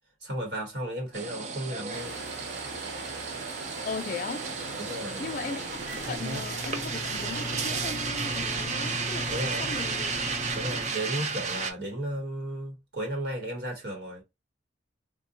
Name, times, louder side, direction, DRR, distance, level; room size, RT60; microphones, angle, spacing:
voice 1, 0.2-2.2 4.8-5.2 9.3-9.6 10.5-14.2, right 1 dB, 60° right, 1.0 m, -34 dB
sound 1, 1.1-11.7, right 4 dB, 35° right, 0.4 m, -33 dB
sound 2, 1.9-7.7, right 3 dB, 90° right, 1.2 m, -41 dB
voice 2, 3.8-4.5 5.2-5.7 6.1-10.1, left 4 dB, 45° left, 0.3 m, -37 dB
Microwave oven, 5.8-10.9, equal, 15° right, 0.8 m, -37 dB
3.7 x 2.1 x 2.6 m
head